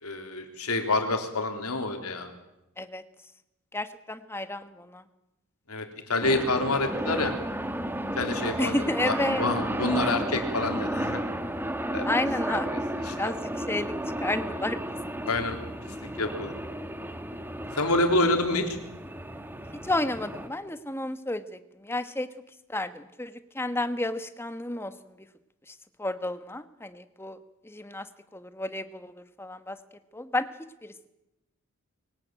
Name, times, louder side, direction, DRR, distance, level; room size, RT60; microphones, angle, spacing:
voice 1, 0.0-2.3 5.7-7.3 8.2-11.2 11.9-12.1 12.7-12.8 13.1-13.3 15.2-15.6 16.2-16.5 17.7-18.7, left 2 dB, 90° left, 5 dB, 3.6 m, -27 dB
voice 2, 3.7-5.0 8.6-9.5 12.0-12.7 13.2-13.9 14.2-14.8 19.8-22.3 22.7-25.2 25.7-27.4 27.6-28.1 28.3-29.8 30.1-30.5 30.8-31.1, left 1 dB, 10° left, 10 dB, 1.2 m, -31 dB
sound 1, 6.2-20.5, right 1 dB, 10° right, 1.5 m, -33 dB
22.5 x 18.0 x 9.1 m, 0.92 s
head